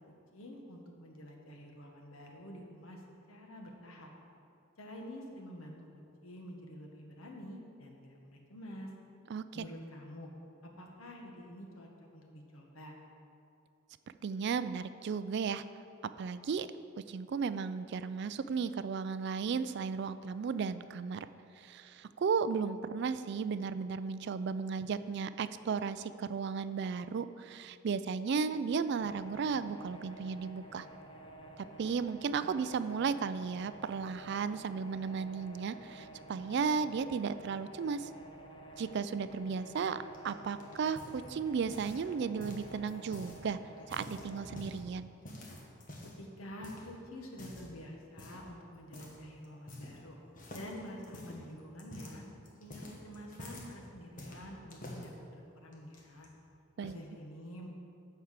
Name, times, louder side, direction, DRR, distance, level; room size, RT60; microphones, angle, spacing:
voice 1, 0.1-3.0 3.3-4.1 4.8-5.8 6.2-8.9 9.5-10.3 10.6-13.0 46.2-50.2 50.5-52.2 52.6-56.3 56.8-57.7, equal, 90° left, 1 dB, 1.4 m, -48 dB
voice 2, 9.3-9.6 14.2-15.6 16.2-16.7 17.1-21.3 21.6-30.9 31.6-38.1 38.8-43.6 43.9-45.1 56.8-57.0, right 5 dB, 55° right, 13 dB, 0.3 m, -35 dB
sound 1, 29.0-44.6, right 1 dB, 25° left, 0.7 m, -51 dB
sound 2, 40.1-42.1 42.4-43.4 43.8-44.8 45.2-46.2 46.6-46.9 47.3-47.7 48.2-48.5 48.9-49.2 49.4-50.1 50.4-53.7 54.2-55.1 55.7-56.3, left 1 dB, 40° left, 1.4 m, -48 dB
10.5 x 4.7 x 7.2 m, 2.6 s
head